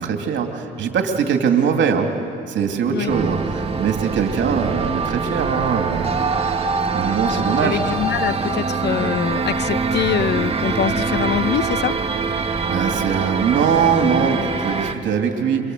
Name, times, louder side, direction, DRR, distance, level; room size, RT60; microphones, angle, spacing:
voice 1, 0.0-2.1 2.5-6.2 6.9-7.8 12.7-15.7, right 7 dB, 65° right, 4 dB, 2.8 m, -21 dB
sound 1, 3.1-15.0, right 4 dB, 30° right, 1.9 m, -23 dB
voice 2, 7.3-12.0, left 9 dB, 55° left, 14 dB, 0.9 m, -24 dB
27.0 x 24.0 x 8.1 m, 2.6 s
cardioid pair, 80°, 20 cm